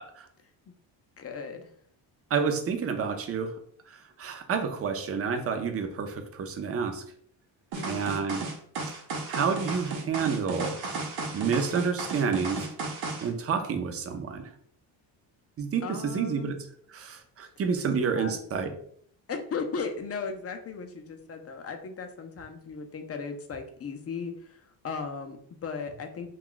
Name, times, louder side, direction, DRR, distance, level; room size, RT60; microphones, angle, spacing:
voice 1, 1.2-1.7 7.8-8.2 15.8-16.6 17.8-18.4 19.3-26.3, left 5 dB, 35° left, 5 dB, 0.4 m, -37 dB
voice 2, 2.3-3.5 3.9-7.0 7.9-8.4 9.3-10.7 11.3-12.7 13.2-14.5 15.6-15.9 16.1-16.6 16.9-18.7, right 6 dB, 30° right, 6 dB, 0.5 m, -29 dB
sound 1, 7.7-13.3, right 3 dB, 80° right, 0.8 m, -34 dB
2.3 x 2.2 x 3.7 m, 0.62 s
cardioid pair, 100°, 46 cm